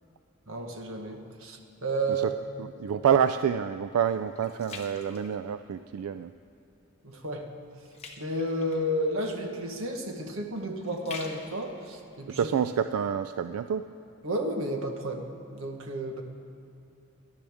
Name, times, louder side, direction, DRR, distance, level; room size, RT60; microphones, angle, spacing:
voice 1, 0.5-2.3 7.0-7.5 8.2-12.5 14.2-16.2, right 1 dB, 65° right, 4 dB, 1.2 m, -32 dB
voice 2, 2.6-6.3 12.4-13.9, right 8 dB, 85° right, 11 dB, 0.3 m, -27 dB
sound 1, 4.0-6.0 6.5-6.8 7.1-13.1 13.6-13.7, left 4 dB, 30° left, 1.1 m, -48 dB
18.0 x 12.0 x 3.5 m, 2.8 s
head